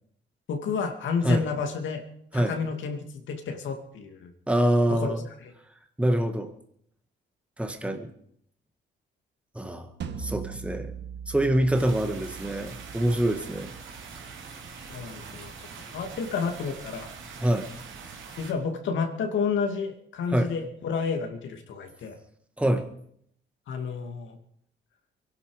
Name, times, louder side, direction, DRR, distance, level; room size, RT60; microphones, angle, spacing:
voice 1, 0.5-2.0 2.3-4.3 4.9-5.1 5.4-5.5 14.9-15.7 15.9-17.1 18.4-22.2 23.7-24.4, left 5 dB, 75° left, 5 dB, 2.6 m, -30 dB
voice 2, 4.5-5.2 6.0-6.5 7.6-8.1 9.5-9.9 10.2-10.9 11.3-13.7 17.4-17.7 20.3-20.5 22.6-22.9, right 1 dB, 5° right, 6 dB, 1.7 m, -25 dB
sound 1, 10.0-15.1, right 6 dB, 60° right, 1.6 m, -41 dB
sound 2, 11.7-18.5, right 5 dB, 75° right, 3.3 m, -43 dB
23.5 x 11.5 x 5.1 m, 0.69 s
cardioid pair, 90°, 20 cm